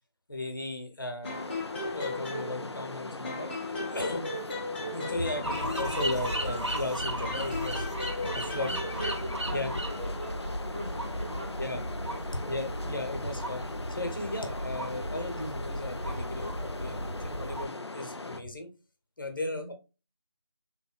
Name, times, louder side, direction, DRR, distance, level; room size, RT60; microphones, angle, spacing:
voice 1, 0.3-1.5 1.9-3.5 3.9-4.3 4.9-7.9 8.3-8.9 9.5-9.7 11.6-11.8 12.5-13.6 13.9-18.7 19.2-19.7, left 1 dB, 50° left, 1.1 m, -36 dB
waterfall and birds chirping, 1.2-18.4, left 2 dB, 70° left, 0.6 m, -40 dB
sound 1, 1.2-2.9 3.2-6.9 7.2-9.2, left 2 dB, 20° left, 0.9 m, -37 dB
Alcatraz Soundscape, 5.4-17.7, equal, 90° right, 1.5 m, -35 dB
voice 2, 8.5-11.8 12.1-12.4 12.8-13.3 19.4-19.7, equal, 20° right, 0.4 m, -42 dB
4.0 x 3.4 x 2.4 m
figure-of-eight pair, 165°, 14 cm